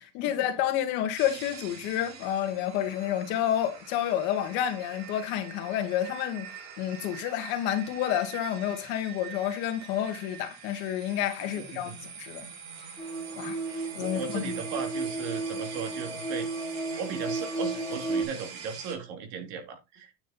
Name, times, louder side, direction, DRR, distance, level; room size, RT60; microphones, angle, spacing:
voice 1, 0.1-6.5 6.8-12.5 13.4-14.5, left 11 dB, 65° left, 2.0 m, -29 dB
sound 1, 1.1-18.9, right 7 dB, 85° right, 4.5 m, -44 dB
voice 2, 11.5-11.9 13.7-16.5 17.0-20.1, right 6 dB, 65° right, 2.7 m, -37 dB
sound 2, 13.0-18.2, right 3 dB, 10° left, 1.7 m, -33 dB
9.2 x 4.9 x 4.2 m
cardioid pair, 145°, 20 cm